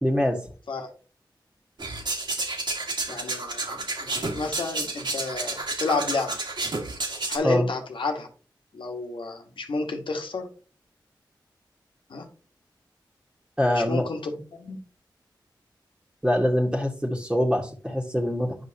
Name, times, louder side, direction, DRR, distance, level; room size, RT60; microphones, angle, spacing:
voice 1, 0.0-0.5 7.4-7.7 13.6-14.0 16.2-18.6, equal, 10° right, -1 dB, 1.6 m, -24 dB
sound 1, 1.8-7.4, right 2 dB, 65° right, 1.8 m, -31 dB
voice 2, 3.1-6.4 7.3-8.3 8.7-10.5 12.1-12.3 13.7-14.8, left 3 dB, 80° left, 4 dB, 1.4 m, -31 dB
9.3 x 5.3 x 2.9 m, 0.39 s
cardioid pair, 40°, 8 cm